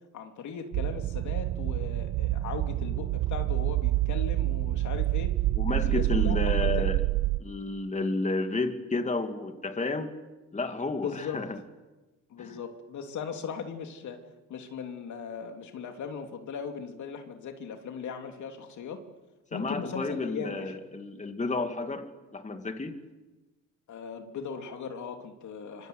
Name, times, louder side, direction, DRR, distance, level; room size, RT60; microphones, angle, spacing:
voice 1, 0.1-5.3 5.7-6.9 11.0-11.4 12.3-14.2 14.5-19.0 19.5-20.8 23.9-25.9, left 6 dB, 70° left, 5 dB, 3.1 m, -38 dB
sound 1, 0.7-7.4, right 17 dB, 80° right, 0.8 m, -27 dB
voice 2, 5.6-7.0 7.4-10.1 10.5-11.6 12.4-12.6 19.5-23.0, left 3 dB, 25° left, 6 dB, 2.6 m, -31 dB
26.0 x 24.0 x 8.0 m, 1.2 s
cardioid pair, 90°, 30 cm